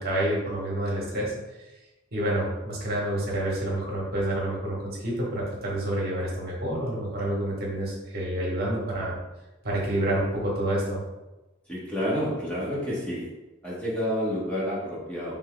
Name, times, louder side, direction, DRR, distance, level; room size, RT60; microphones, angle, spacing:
voice 1, 0.0-1.3 2.1-9.2 9.6-11.0, right 1 dB, 55° right, -4 dB, 1.3 m, -28 dB
voice 2, 11.7-13.3 13.6-15.3, equal, 5° left, -7 dB, 1.1 m, -29 dB
5.5 x 3.6 x 2.3 m, 1.1 s
head